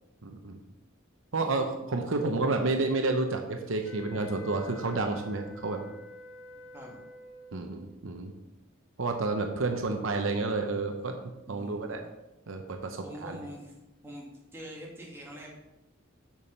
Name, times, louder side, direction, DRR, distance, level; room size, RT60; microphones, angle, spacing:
voice 1, 0.2-0.6 1.3-5.8 7.5-8.3 9.0-12.0 12.5-13.4, right 3 dB, 70° right, 4 dB, 0.8 m, -30 dB
sound 1, 3.8-7.7, equal, 70° left, 0.9 m, -48 dB
voice 2, 11.5-12.1 13.0-15.6, equal, 10° right, -4 dB, 2.1 m, -45 dB
7.1 x 6.2 x 5.4 m, 0.97 s
head